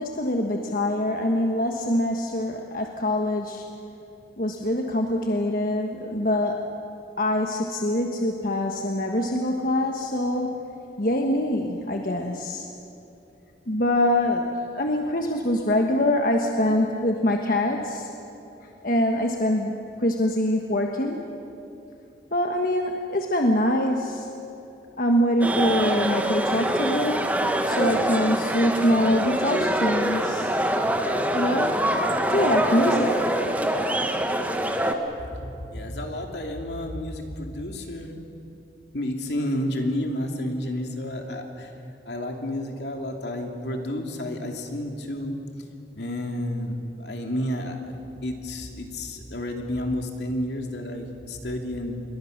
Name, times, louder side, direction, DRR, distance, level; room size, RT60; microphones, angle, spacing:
voice 1, 0.0-3.7 4.4-6.7 7.2-10.6 11.0-12.6 13.7-14.5 14.7-18.1 18.8-21.2 22.3-24.3 25.0-27.3 27.7-30.5 31.3-31.8 32.3-33.3, left 1 dB, 50° left, 2 dB, 1.4 m, -24 dB
sound 1, 25.4-34.9, right 1 dB, 10° right, 1.3 m, -24 dB
voice 2, 35.2-38.2 38.9-41.7 42.1-45.4 45.9-47.9 48.2-52.0, left 1 dB, 75° left, 3 dB, 2.8 m, -31 dB
27.0 x 22.0 x 6.7 m, 2.8 s
head